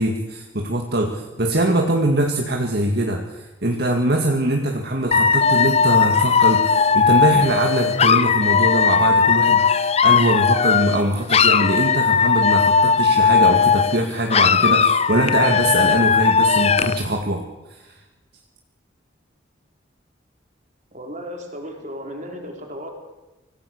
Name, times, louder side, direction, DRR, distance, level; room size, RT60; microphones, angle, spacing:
voice 1, 0.0-17.9, right 1 dB, 55° right, 2 dB, 2.1 m, -22 dB
Dog / Alarm, 5.1-11.0 11.3-14.0 14.3-17.0, left 6 dB, 30° left, 0.6 m, -17 dB
voice 2, 20.9-22.9, equal, 40° right, 2 dB, 4.3 m, -34 dB
25.5 x 17.5 x 6.7 m, 1.1 s
head